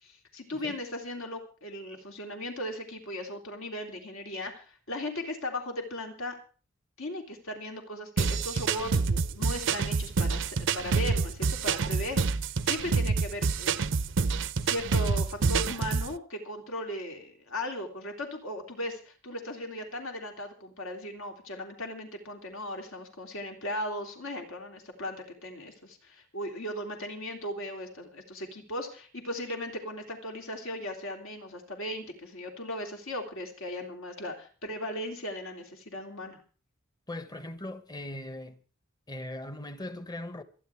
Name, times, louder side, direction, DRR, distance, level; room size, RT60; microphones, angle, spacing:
voice 1, 0.0-6.4 7.0-14.0 14.6-36.4, left 1 dB, 65° left, 3.3 m, -37 dB
sound 1, 8.2-16.1, right 4 dB, 60° right, 0.6 m, -27 dB
voice 2, 37.1-38.6 39.1-40.4, left 1 dB, 20° left, 1.2 m, -39 dB
27.5 x 10.0 x 3.5 m
head